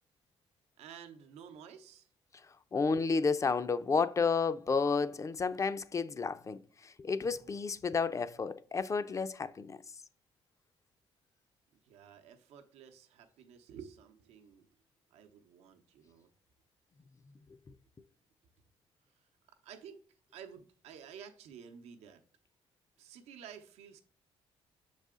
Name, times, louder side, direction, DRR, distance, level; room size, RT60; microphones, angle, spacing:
voice 1, 0.8-2.1 11.7-14.7 15.1-16.3 19.5-20.0 20.3-22.2 23.0-24.0, right 8 dB, 85° right, 0.7 m, -52 dB
voice 2, 2.7-9.8, left 5 dB, 30° left, 0.5 m, -31 dB
6.6 x 4.1 x 3.6 m
cardioid pair, 85°, 11 cm